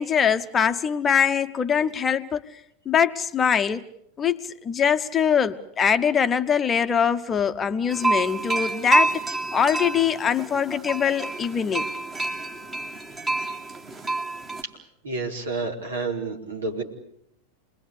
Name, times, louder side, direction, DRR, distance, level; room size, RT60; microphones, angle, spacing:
voice 1, 0.0-2.4 2.9-3.8 4.2-9.1 9.5-11.9, left 7 dB, 20° left, 9 dB, 1.0 m, -23 dB
sound 1, 7.9-14.6, right 2 dB, 20° right, 2.5 m, -27 dB
voice 2, 15.0-16.8, right 3 dB, 70° right, 1 dB, 4.7 m, -29 dB
28.0 x 21.0 x 8.5 m, 0.74 s
figure-of-eight pair, 90°, 0 cm